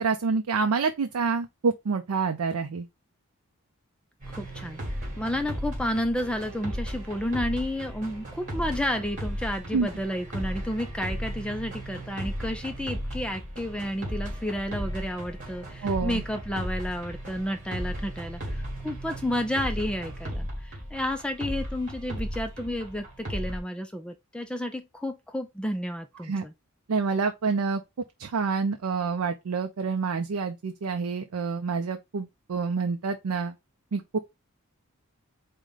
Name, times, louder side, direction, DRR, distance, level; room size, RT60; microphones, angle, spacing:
voice 1, 0.0-2.9 9.7-9.9 15.8-16.2 26.2-26.4 26.9-27.8 28.2-33.5 33.9-34.2, right 4 dB, 80° right, 0.5 m, -27 dB
sound 1, 4.2-23.6, equal, 35° right, 1.6 m, -35 dB
voice 2, 4.3-4.8 5.2-26.5, left 1 dB, 5° left, 0.3 m, -31 dB
4.8 x 2.2 x 3.7 m
head